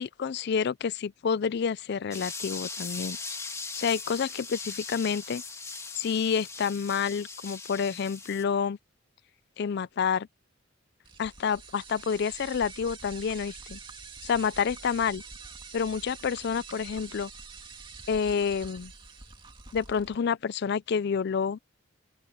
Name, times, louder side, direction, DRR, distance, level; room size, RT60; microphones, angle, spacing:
voice 1, 0.0-3.2 3.7-5.4 6.0-8.8 9.6-10.3 11.2-13.8 14.2-15.2 15.7-17.3 18.1-18.9 19.7-21.6, left 6 dB, 55° left, 0.4 m, -29 dB
sound 1, 2.1-8.4, left 4 dB, 15° left, 2.1 m, -39 dB
sound 2, 11.0-20.2, right 4 dB, 25° right, 2.5 m, -46 dB
open air
head